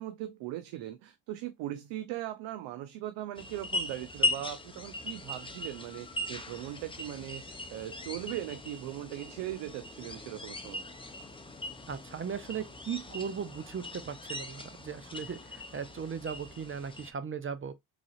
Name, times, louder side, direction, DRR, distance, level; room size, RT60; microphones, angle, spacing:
voice 1, 0.0-10.8, right 13 dB, 80° right, 0.6 m, -39 dB
sound 1, 3.3-17.1, left 2 dB, 10° left, 0.7 m, -39 dB
voice 2, 11.9-17.7, right 7 dB, 30° right, 0.5 m, -38 dB
3.7 x 3.3 x 2.4 m
supercardioid pair, 65°, 43 cm